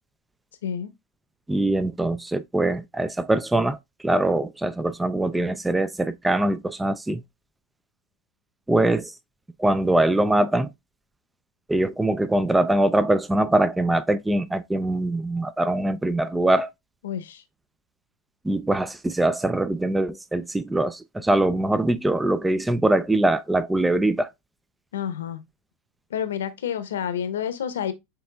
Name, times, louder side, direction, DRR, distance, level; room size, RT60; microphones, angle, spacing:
voice 1, 1.5-7.2 8.7-9.1 9.6-10.7 11.7-16.7 18.4-24.3, right 1 dB, 10° right, 0.4 m, -23 dB
voice 2, 17.0-17.4 24.9-25.4 26.1-27.9, left 9 dB, 85° left, 0.8 m, -29 dB
6.8 x 3.3 x 2.2 m
hypercardioid pair, 100°, 0 cm